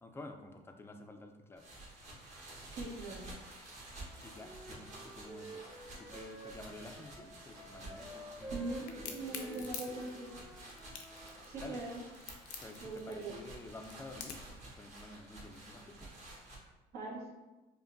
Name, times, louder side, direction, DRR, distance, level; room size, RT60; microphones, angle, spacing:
voice 1, 0.0-1.7 4.2-8.7 8.9-10.0 11.6-11.8 12.6-14.4 14.7-16.1, left 2 dB, 15° left, 5 dB, 0.3 m, -51 dB
sound 1, 1.6-16.6, right 2 dB, 45° right, 1.3 m, -51 dB
voice 2, 2.7-3.3 8.5-10.3 11.4-12.0 12.8-13.3 16.9-17.3, right 2 dB, 70° right, -6 dB, 1.1 m, -41 dB
Wind instrument woodwind instrument, 3.9-11.4, right 2 dB, 20° right, 0.9 m, -51 dB
Crack, 8.9-14.6, left 7 dB, 90° left, 0.5 m, -46 dB
5.0 x 2.2 x 2.5 m, 1.1 s
cardioid pair, 110°, 17 cm